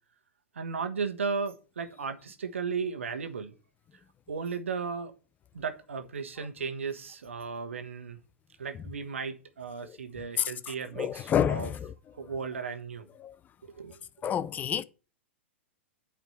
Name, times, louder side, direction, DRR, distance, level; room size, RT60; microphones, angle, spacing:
voice 1, 0.5-3.6 3.9-5.1 5.5-8.2 8.6-11.7 12.1-13.1 13.6-14.0, right 5 dB, 80° right, 1.3 m, -35 dB
voice 2, 11.0-11.9 13.2-13.3 14.2-14.8, left 9 dB, 25° left, 0.6 m, -28 dB
9.1 x 5.0 x 6.5 m
hypercardioid pair, 105°, 7 cm